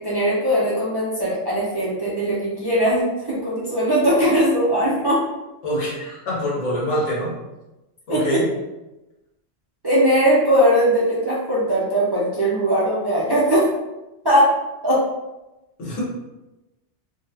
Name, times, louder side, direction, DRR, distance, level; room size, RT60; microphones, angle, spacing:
voice 1, 0.0-5.2 8.1-8.4 9.8-13.7 14.2-14.5 14.8-15.0, equal, 35° right, -7 dB, 0.4 m, -19 dB
voice 2, 5.6-7.3 8.1-8.5 15.8-16.0, equal, 85° left, -6 dB, 1.4 m, -25 dB
3.4 x 2.2 x 2.7 m, 1.0 s
omnidirectional pair, 1.2 m